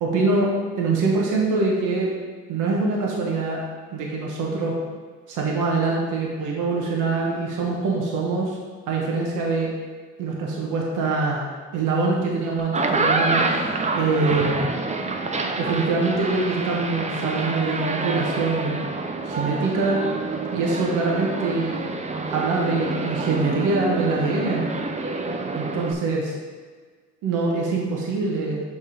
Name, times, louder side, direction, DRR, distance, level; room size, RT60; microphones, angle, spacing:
voice 1, 0.0-2.1 2.5-3.6 3.9-4.7 5.3-8.6 8.9-9.7 10.2-14.7 15.6-18.9 19.2-20.0 20.5-21.8 22.3-24.6 25.5-26.3 27.2-28.6, right 3 dB, 90° right, -2 dB, 1.1 m, -24 dB
sound 1, 12.6-25.9, right 3 dB, 25° right, 0.6 m, -27 dB
6.9 x 3.6 x 4.9 m, 1.5 s
cardioid pair, 90°, 30 cm